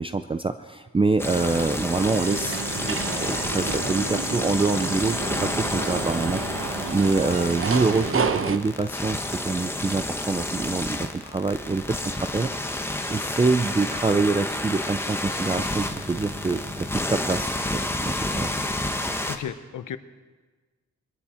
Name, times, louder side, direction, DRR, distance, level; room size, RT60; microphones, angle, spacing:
voice 1, 0.0-18.5, right 3 dB, 20° right, 9 dB, 0.4 m, -26 dB
sound 1, 1.2-19.4, left 1 dB, 10° left, 1.0 m, -30 dB
sound 2, 1.9-8.6, right 5 dB, 45° right, 0.9 m, -30 dB
sound 3, 10.9-16.7, left 2 dB, 35° left, 2.7 m, -48 dB
voice 2, 19.3-20.0, left 8 dB, 90° left, 12 dB, 0.8 m, -34 dB
23.5 x 13.5 x 4.3 m, 1.3 s
wide cardioid pair, 115°, 30 cm